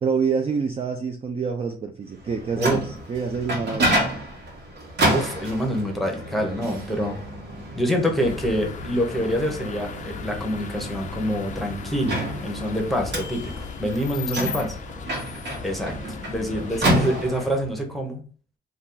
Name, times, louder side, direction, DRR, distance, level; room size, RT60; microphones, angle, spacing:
voice 1, 0.0-3.9, right 5 dB, 30° right, 4 dB, 0.4 m, -27 dB
Microwave oven, 2.2-17.7, right 1 dB, 60° right, 1.3 m, -29 dB
voice 2, 5.1-7.2 7.7-14.8 15.1-15.4 15.6-18.2, equal, ahead, 1 dB, 0.8 m, -26 dB
sound 1, 8.2-17.3, left 6 dB, 40° left, 0.4 m, -37 dB
2.6 x 2.3 x 3.8 m, 0.42 s
cardioid pair, 90°, 20 cm